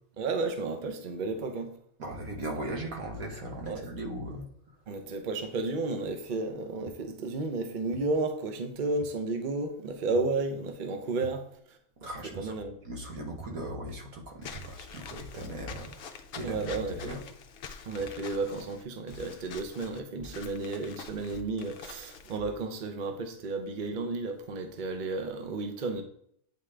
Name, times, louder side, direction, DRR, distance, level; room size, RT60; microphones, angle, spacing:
voice 1, 0.2-1.8 3.7-3.9 4.9-11.8 12.4-12.8 16.4-17.2 17.9-26.0, right 3 dB, 45° right, 0.8 m, -32 dB
voice 2, 2.0-4.4 12.0-12.5 12.8-15.9 16.4-17.2, right 1 dB, 85° right, 1.6 m, -38 dB
sound 1, 6.9-7.0 7.9-8.0 9.0-9.1 10.1-10.3 11.2-11.4 12.3-12.5 13.4-13.6 14.5-14.8 15.7-15.9 16.8-17.0 18.0-18.2 19.1-19.3 20.2-20.4 21.3-21.5 22.4-22.6, right 6 dB, 65° right, 0.4 m, -47 dB
Walk footsteps / Squeak, 14.4-22.4, left 6 dB, 60° left, 0.6 m, -46 dB
8.6 x 3.7 x 3.3 m
omnidirectional pair, 1.4 m